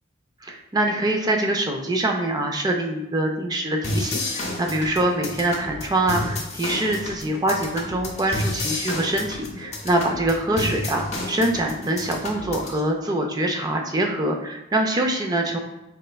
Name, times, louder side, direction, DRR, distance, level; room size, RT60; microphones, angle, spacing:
voice 1, 0.4-15.6, right 1 dB, 20° right, 2 dB, 0.3 m, -24 dB
sound 1, 3.8-12.8, left 2 dB, 35° left, 0.6 m, -31 dB
4.2 x 3.2 x 2.2 m, 0.99 s
head